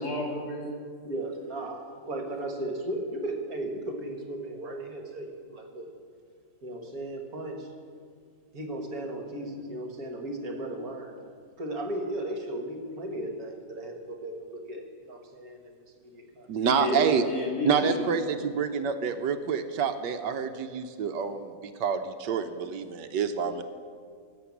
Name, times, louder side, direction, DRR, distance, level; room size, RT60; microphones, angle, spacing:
voice 1, 0.0-0.8 16.6-18.1, left 2 dB, 55° left, -1 dB, 3.0 m, -31 dB
voice 2, 1.0-6.0 6.6-7.7 8.5-17.3, right 1 dB, 55° right, 4 dB, 1.9 m, -36 dB
voice 3, 16.5-17.2 17.6-23.6, right 6 dB, 75° right, 8 dB, 1.3 m, -28 dB
17.0 x 6.9 x 8.4 m, 2.1 s
omnidirectional pair, 2.0 m